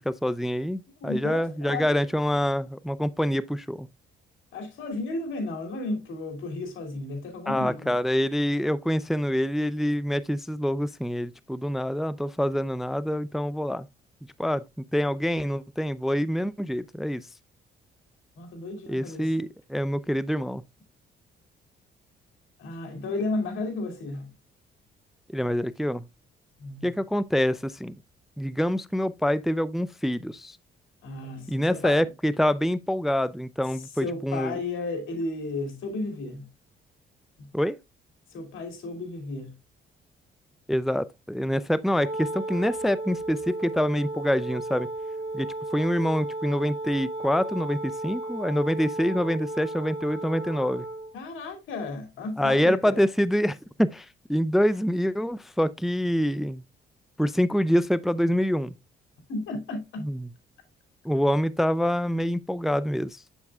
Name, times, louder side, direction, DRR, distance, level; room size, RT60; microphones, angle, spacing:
voice 1, 0.1-3.9 7.5-13.9 14.4-17.2 18.9-20.6 25.3-26.0 26.8-27.9 28.4-30.6 31.5-34.6 37.5-37.8 40.7-44.9 45.3-45.5 45.7-50.8 52.4-56.6 57.2-58.8 60.0-60.3 61.0-63.2, equal, ahead, 0.4 m, -26 dB
voice 2, 1.0-2.0 4.5-7.9 18.4-19.4 22.6-24.3 26.6-26.9 31.0-32.1 33.7-36.5 38.3-39.5 51.1-53.0 59.3-60.0, left 2 dB, 80° left, 2.7 m, -33 dB
Wind instrument woodwind instrument, 41.9-51.1, right 2 dB, 55° right, 2.5 m, -34 dB
7.8 x 7.2 x 2.3 m
cardioid pair, 90°, 20 cm